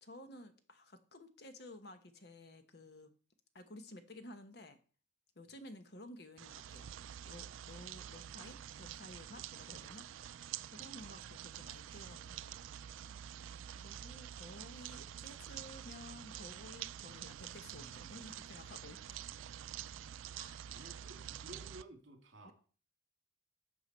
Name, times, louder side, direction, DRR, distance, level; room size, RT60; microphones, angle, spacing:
voice 1, 0.0-3.2 3.5-4.8 5.4-7.0 7.2-13.3 13.8-19.3 20.3-21.0 22.4-22.5, left 1 dB, 55° left, 8 dB, 1.1 m, -54 dB
sound 1, 6.4-21.8, right 10 dB, 80° right, 0.4 m, -48 dB
voice 2, 20.7-22.5, right 1 dB, 65° right, 4 dB, 2.5 m, -54 dB
11.5 x 6.8 x 4.4 m, 0.39 s
head